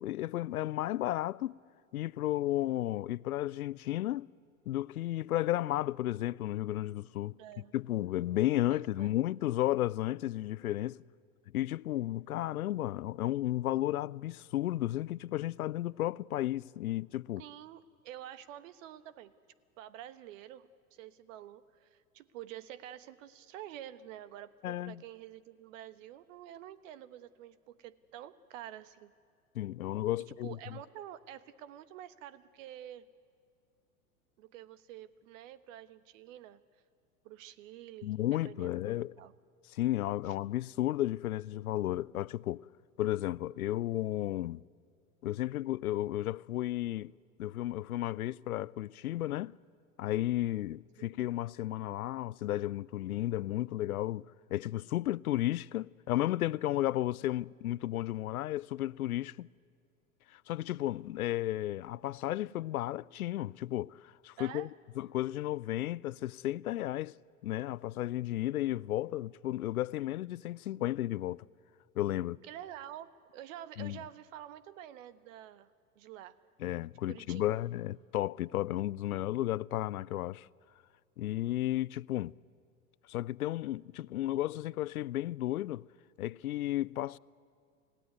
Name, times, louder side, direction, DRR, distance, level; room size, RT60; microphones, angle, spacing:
voice 1, 0.0-1.6 1.9-4.3 4.7-7.4 7.7-11.0 11.5-17.4 24.6-25.0 29.5-30.8 38.0-39.1 39.7-42.6 43.0-44.6 45.2-47.1 47.4-49.5 50.0-59.5 60.3-64.7 65.0-67.1 67.4-71.4 72.0-72.4 73.8-74.0 76.6-80.5 81.2-82.3 83.1-85.9 86.2-87.2, left 14 dB, 80° left, 0.5 m, -33 dB
voice 2, 7.4-7.7 8.7-9.1 17.4-19.3 19.8-29.1 30.3-33.1 34.4-36.6 37.2-39.3 51.0-51.1 64.4-64.7 72.4-75.7 75.9-76.4 77.1-77.6, right 12 dB, 60° right, 1.3 m, -48 dB
28.5 x 16.5 x 9.3 m
hypercardioid pair, 90°, 44 cm